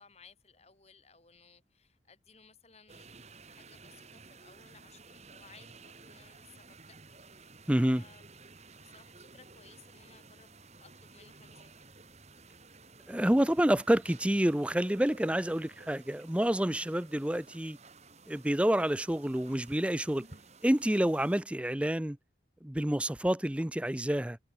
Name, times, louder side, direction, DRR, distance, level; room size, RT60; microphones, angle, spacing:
voice 1, 0.0-3.1 3.4-8.2 8.7-11.9, left 5 dB, 35° left, 3.5 m, -60 dB
sound 1, 2.9-21.4, right 3 dB, 35° right, 5.0 m, -54 dB
voice 2, 7.7-8.0 13.1-17.8 18.3-20.3 20.6-22.2 22.6-24.4, right 1 dB, 5° right, 0.5 m, -28 dB
head